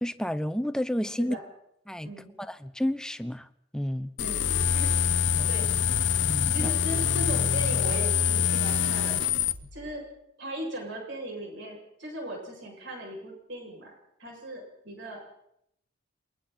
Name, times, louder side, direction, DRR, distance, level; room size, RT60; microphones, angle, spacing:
voice 1, 0.0-1.4 1.9-2.1 2.4-3.5 3.7-4.1 5.3-5.5 6.2-6.7, equal, 5° left, 11 dB, 0.8 m, -31 dB
sound 1, 4.2-9.5, left 8 dB, 70° left, 0.9 m, -25 dB
voice 2, 4.2-4.9 5.5-5.8 6.5-9.2 9.7-10.0 10.4-13.9 14.2-15.3, right 1 dB, 70° right, 0 dB, 7.6 m, -38 dB
sound 2, 5.9-9.9, equal, 25° right, 1.4 m, -44 dB
28.0 x 23.0 x 4.4 m, 0.77 s
head